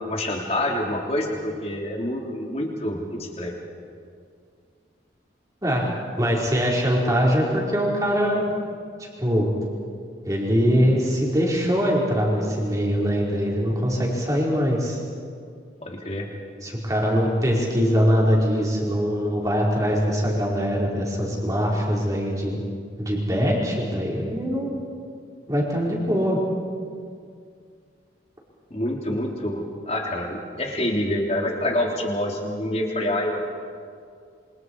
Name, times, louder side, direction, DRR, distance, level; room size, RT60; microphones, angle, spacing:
voice 1, 0.1-3.5 15.8-16.3 28.7-33.4, left 1 dB, 35° left, 0 dB, 3.4 m, -27 dB
voice 2, 6.2-8.5 9.2-9.5 10.2-15.0 16.6-22.6 23.0-24.7 25.5-26.4, equal, 20° right, -3 dB, 4.8 m, -22 dB
27.5 x 26.5 x 4.9 m, 2.2 s
head